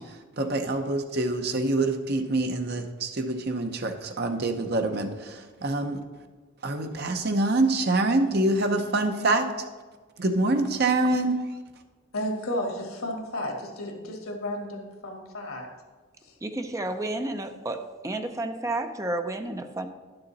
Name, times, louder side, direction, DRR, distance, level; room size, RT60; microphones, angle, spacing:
voice 1, 0.4-6.0 6.6-9.5 10.2-11.4, right 2 dB, 50° right, 6 dB, 0.8 m, -25 dB
voice 2, 12.1-15.7 16.2-16.3, left 1 dB, 85° left, 2 dB, 1.8 m, -33 dB
voice 3, 16.4-17.8 18.0-19.9, right 2 dB, 15° right, 6 dB, 0.5 m, -31 dB
10.5 x 6.8 x 4.1 m, 1.4 s
head